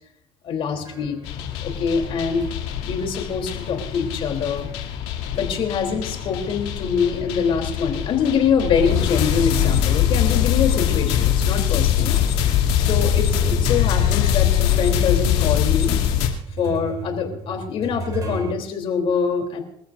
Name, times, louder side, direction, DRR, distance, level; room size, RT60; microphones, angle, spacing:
voice 1, 0.4-1.2 1.6-2.5 2.8-4.7 5.3-12.1 12.8-16.0 16.6-19.6, left 6 dB, 55° left, 4 dB, 3.5 m, -24 dB
sound 1, 0.7-5.7 6.0-10.7 11.3-11.4 12.1-18.5, right 2 dB, 35° right, 2.7 m, -35 dB
sound 2, 1.2-16.3, left 10 dB, 85° left, 2.8 m, -22 dB
27.5 x 14.0 x 2.7 m, 0.74 s
cardioid pair, 125°, 11 cm